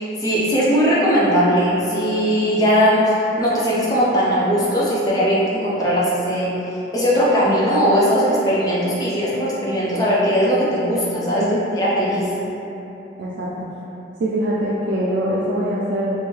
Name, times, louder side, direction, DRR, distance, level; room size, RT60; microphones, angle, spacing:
voice 1, 0.0-6.5 6.9-11.4 11.8-12.3, equal, 20° left, -7 dB, 0.4 m, -19 dB
voice 2, 13.2-13.7 14.2-16.1, right 1 dB, 80° right, -6 dB, 0.4 m, -23 dB
2.6 x 2.2 x 3.1 m, 3.0 s
head